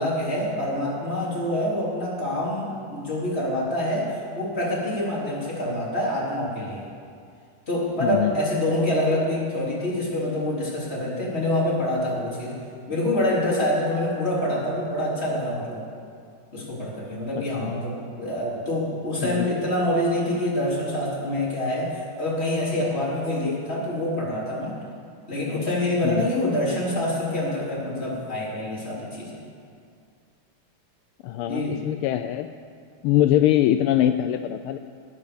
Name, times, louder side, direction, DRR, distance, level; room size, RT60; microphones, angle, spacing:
voice 1, 0.0-6.9 7.7-12.6 12.9-15.8 16.5-24.8 25.3-29.4 31.4-31.8, left 1 dB, 25° left, -6 dB, 4.1 m, -26 dB
voice 2, 8.0-8.4 17.6-17.7 19.2-19.5 26.0-26.3 31.2-32.5 33.0-34.8, left 12 dB, 80° left, 8 dB, 1.5 m, -22 dB
20.5 x 8.6 x 7.1 m, 2.3 s
omnidirectional pair, 2.4 m